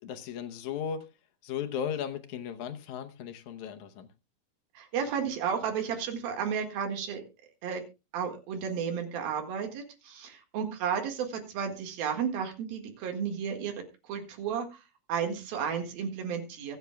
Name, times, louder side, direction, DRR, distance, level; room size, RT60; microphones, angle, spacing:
voice 1, 0.0-1.1 1.4-4.1, left 8 dB, 70° left, 2.1 m, -36 dB
voice 2, 4.8-7.2 7.6-7.8 8.1-13.7 14.1-14.8 15.1-16.8, right 7 dB, 90° right, 3.6 m, -33 dB
24.0 x 8.2 x 2.3 m
omnidirectional pair, 4.1 m